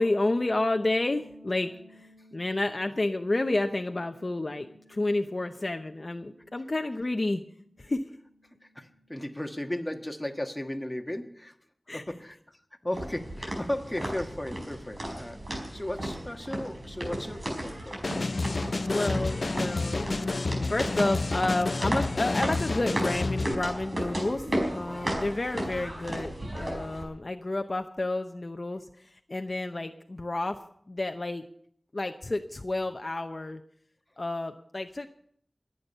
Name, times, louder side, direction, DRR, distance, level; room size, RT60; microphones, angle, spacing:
voice 1, 0.0-7.4 7.8-8.1 11.9-12.0 18.8-20.3 20.7-30.6 30.9-31.4 31.9-33.6 34.2-35.1, left 2 dB, 50° left, 6 dB, 0.8 m, -30 dB
sound 1, 0.6-10.3, equal, 35° right, 2.1 m, -57 dB
voice 2, 8.6-11.5 11.9-12.6 12.8-15.4 15.7-18.0, left 1 dB, 15° left, 3 dB, 1.6 m, -35 dB
sound 2, 12.9-27.0, right 1 dB, 65° right, 4.9 m, -35 dB
sound 3, 18.0-23.6, left 3 dB, 75° left, 0.5 m, -30 dB
22.0 x 8.7 x 5.5 m, 0.63 s
wide cardioid pair, 65°, 0 cm